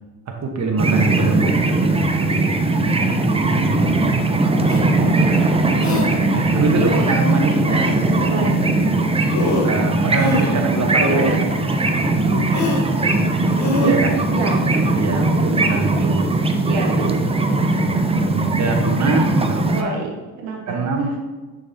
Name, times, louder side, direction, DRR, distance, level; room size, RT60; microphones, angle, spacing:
voice 1, 0.3-1.5 6.4-7.9 9.6-11.5 13.8-14.2 14.9-16.3 18.3-19.9 20.7-21.1, right 3 dB, 35° right, 2 dB, 1.2 m, -23 dB
sound 1, 0.8-19.8, right 2 dB, 10° right, 0.6 m, -19 dB
sound 2, 4.7-4.8 5.8-6.1 6.7-7.3 8.9-9.0 9.3-9.8 10.1-10.6 10.9-11.4 12.5-12.8 13.5-13.9, left 1 dB, 35° left, 1.3 m, -23 dB
voice 2, 4.9-5.4 8.2-8.7 12.2-12.5 14.3-14.7 16.6-17.2 19.6-20.8, right 3 dB, 70° right, 1 dB, 1.0 m, -28 dB
6.6 x 5.3 x 2.8 m, 1.3 s
hypercardioid pair, 55°, 48 cm